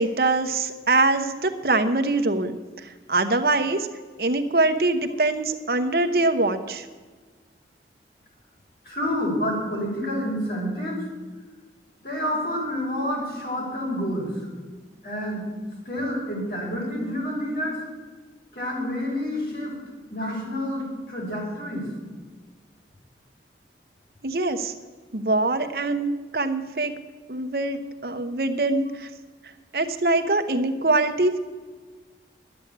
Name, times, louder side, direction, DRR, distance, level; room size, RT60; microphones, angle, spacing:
voice 1, 0.0-3.9 4.2-6.9 24.2-24.7 25.1-26.9 27.3-29.1 29.7-31.4, right 2 dB, 55° right, 8 dB, 0.9 m, -23 dB
voice 2, 8.9-11.0 12.0-14.3 15.0-15.5 15.9-17.8 18.5-19.8 20.1-21.8, equal, 60° left, -3 dB, 5.1 m, -28 dB
11.5 x 8.6 x 8.7 m, 1.4 s
head